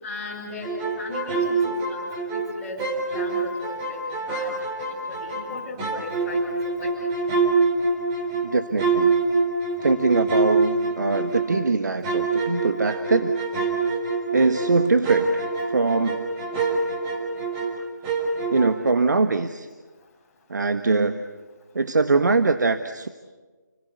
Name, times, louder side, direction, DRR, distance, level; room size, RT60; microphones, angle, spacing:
voice 1, 0.0-2.8 3.1-7.1, left 3 dB, 10° left, -6 dB, 7.7 m, -37 dB
sound 1, 0.6-2.5 2.8-5.5 5.8-11.6 12.0-17.8 18.0-18.9, right 4 dB, 15° right, 3.9 m, -25 dB
voice 2, 8.4-9.1 9.8-13.3 14.3-16.2 18.5-19.7 20.5-21.2 21.7-23.1, right 3 dB, 70° right, 9 dB, 1.4 m, -22 dB
30.0 x 20.0 x 8.2 m, 1.3 s
figure-of-eight pair, 165°, 10 cm